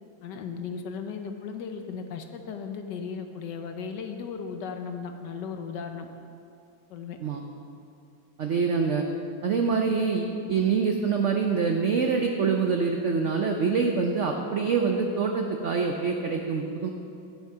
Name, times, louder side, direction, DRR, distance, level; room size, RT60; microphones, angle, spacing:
voice 1, 0.2-6.1 6.9-7.2, left 6 dB, 70° left, 6 dB, 1.3 m, -36 dB
voice 2, 8.4-9.0 9.4-16.9, right 5 dB, 75° right, 3 dB, 0.6 m, -25 dB
10.5 x 7.6 x 5.6 m, 2.6 s
omnidirectional pair, 2.1 m